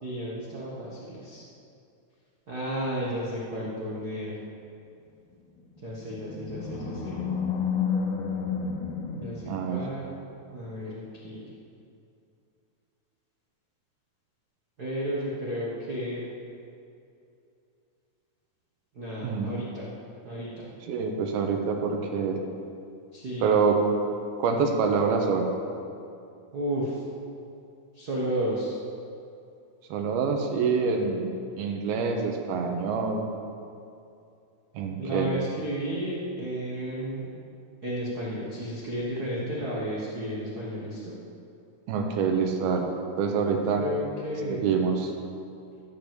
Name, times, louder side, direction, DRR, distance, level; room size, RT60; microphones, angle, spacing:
voice 1, 0.0-1.4 2.5-4.3 5.8-7.2 9.2-10.1 10.5-11.5 14.8-16.2 18.9-19.9 20.2-20.7 23.1-23.6 26.5-27.0 27.9-28.7 35.0-37.3 37.8-41.1 43.8-44.6, equal, 60° right, -6 dB, 0.9 m, -33 dB
Animal, 5.6-10.2, left 6 dB, 70° left, 1.7 m, -31 dB
voice 2, 9.5-9.8 19.2-19.5 20.8-22.4 23.4-23.8 24.4-25.5 29.9-31.3 31.6-33.3 34.7-35.3 41.9-42.9 43.2-43.9 44.5-45.1, right 5 dB, 90° right, 3 dB, 2.9 m, -26 dB
14.5 x 5.3 x 7.6 m, 2.6 s
omnidirectional pair, 4.3 m